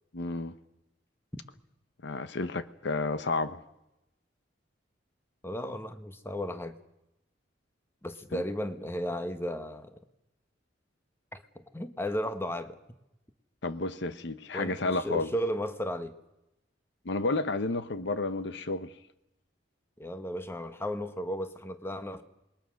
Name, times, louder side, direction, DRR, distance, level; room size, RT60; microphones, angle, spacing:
voice 1, 0.1-0.5 2.0-3.6 8.3-8.4 13.6-15.3 17.0-18.9, left 3 dB, 65° left, 0.9 m, -31 dB
voice 2, 5.4-6.7 8.0-10.0 11.3-12.8 14.5-16.1 20.0-22.2, equal, 15° left, 1.2 m, -34 dB
27.0 x 21.0 x 6.4 m
head